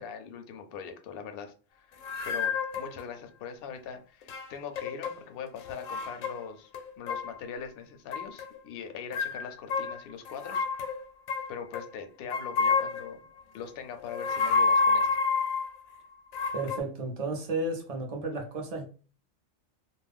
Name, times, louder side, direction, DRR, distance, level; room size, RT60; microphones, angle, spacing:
voice 1, 0.0-2.0 2.2-6.7 7.0-10.7 11.5-13.2 13.5-15.2, left 7 dB, 60° left, 0.6 m, -41 dB
sound 1, 2.0-3.0 4.2-5.2 5.5-6.5 6.7-7.4 8.1-8.6 9.1-11.9 12.3-13.2 14.0-15.8 16.3-16.8, left 4 dB, 90° left, 1.0 m, -29 dB
voice 2, 16.5-18.9, right 2 dB, 45° right, 0.4 m, -33 dB
2.4 x 2.0 x 3.4 m
omnidirectional pair, 1.4 m